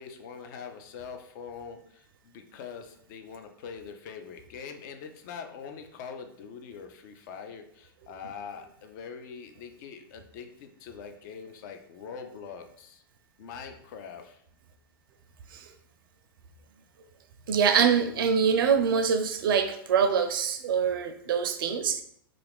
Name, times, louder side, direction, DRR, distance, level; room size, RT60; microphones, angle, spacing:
voice 1, 0.0-13.0 13.4-14.4 18.0-18.2, left 6 dB, 55° left, 6 dB, 0.5 m, -43 dB
voice 2, 17.5-22.0, right 7 dB, 70° right, 8 dB, 0.4 m, -24 dB
2.4 x 2.4 x 3.4 m, 0.66 s
hypercardioid pair, 100°, 12 cm